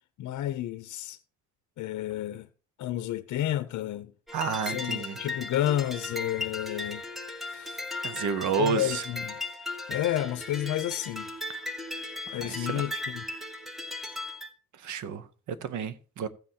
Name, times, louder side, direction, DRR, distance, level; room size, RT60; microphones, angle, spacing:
voice 1, 0.2-1.2 1.8-2.5 2.8-4.1 4.6-7.0 7.3-7.8 8.6-9.4 9.9-11.3 12.3-13.3, left 13 dB, 80° left, 0.6 m, -31 dB
sound 1, 4.3-14.5, left 2 dB, ahead, 0.8 m, -37 dB
voice 2, 4.3-5.2 8.0-9.0 11.5-11.6 12.3-12.8 14.8-16.3, right 6 dB, 75° right, 0.8 m, -31 dB
15.0 x 7.7 x 2.8 m
wide cardioid pair, 165°, 29 cm